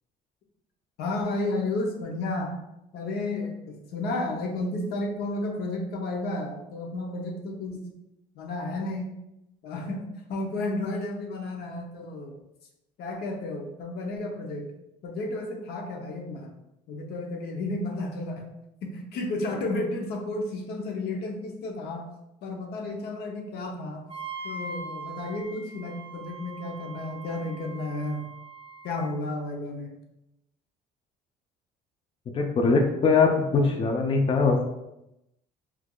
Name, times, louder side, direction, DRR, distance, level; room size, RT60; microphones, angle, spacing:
voice 1, 1.0-2.6 2.9-7.9 8.3-9.2 9.6-12.4 13.0-14.7 15.0-16.5 16.9-18.5 18.8-22.1 22.4-24.1 24.4-28.3 28.8-29.9, left 2 dB, 70° left, 2 dB, 0.7 m, -32 dB
Wind instrument woodwind instrument, 24.1-29.1, right 3 dB, 30° right, 0.6 m, -41 dB
voice 2, 32.3-34.7, left 4 dB, 30° left, 2 dB, 0.4 m, -22 dB
4.5 x 2.4 x 2.2 m, 0.88 s
cardioid pair, 110°, 17 cm